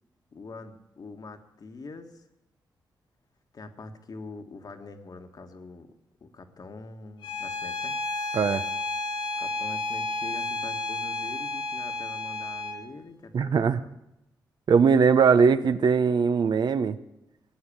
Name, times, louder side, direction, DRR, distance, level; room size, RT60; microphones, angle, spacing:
voice 1, 0.3-2.2 3.5-5.9 6.2-8.0 9.4-13.9, left 3 dB, 55° left, 6 dB, 1.6 m, -44 dB
Bowed string instrument, 7.2-12.8, left 3 dB, 75° left, 1.8 m, -32 dB
voice 2, 13.3-13.8 14.7-17.0, right 6 dB, 65° right, 12 dB, 0.7 m, -20 dB
17.5 x 8.0 x 8.8 m, 0.92 s
cardioid pair, 60°, 8 cm